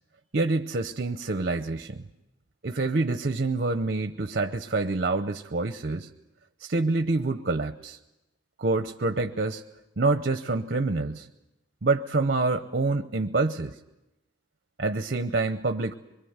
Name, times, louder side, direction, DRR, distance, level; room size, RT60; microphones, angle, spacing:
voice 1, 0.3-2.0 2.6-6.1 6.6-8.0 8.6-9.6 10.0-11.3 11.8-13.8 14.8-15.9, right 3 dB, 55° right, 9 dB, 0.8 m, -27 dB
24.0 x 23.0 x 8.1 m, 0.96 s
head